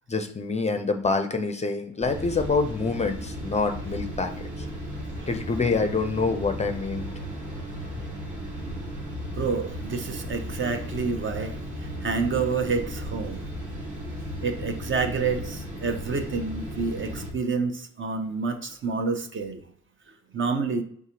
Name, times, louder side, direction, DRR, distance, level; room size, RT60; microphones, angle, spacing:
voice 1, 0.1-4.7 5.3-7.0, left 4 dB, 20° left, 6 dB, 0.5 m, -26 dB
sound 1, 2.0-17.3, equal, 70° right, 1.5 m, -35 dB
voice 2, 9.4-13.5 14.1-19.6 20.3-20.8, right 4 dB, 40° right, 6 dB, 0.7 m, -29 dB
4.7 x 3.4 x 2.9 m, 0.64 s
cardioid pair, 90°, 30 cm